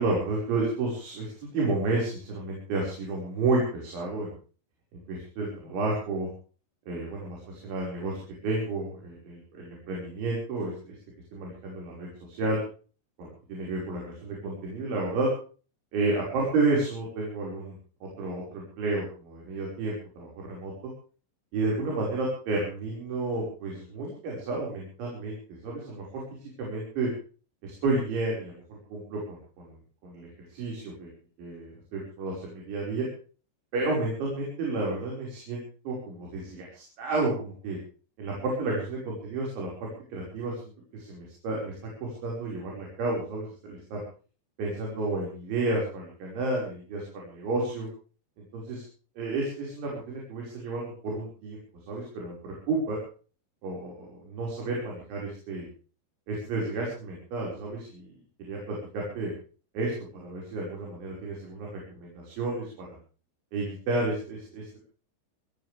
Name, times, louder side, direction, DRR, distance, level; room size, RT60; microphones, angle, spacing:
voice 1, 0.0-4.3 4.9-6.3 6.9-10.9 11.3-12.6 13.2-15.3 15.9-17.8 18.0-20.7 21.5-26.2 26.6-27.1 27.6-28.6 28.9-29.8 30.0-31.1 31.4-33.1 33.7-37.8 38.2-40.6 40.9-44.0 44.6-47.9 48.5-48.8 49.2-51.6 51.9-53.0 53.6-55.7 56.3-59.3 59.7-63.0 63.5-64.8, right 2 dB, 85° right, -2 dB, 7.7 m, -31 dB
27.0 x 14.5 x 3.5 m, 0.39 s
omnidirectional pair, 5.3 m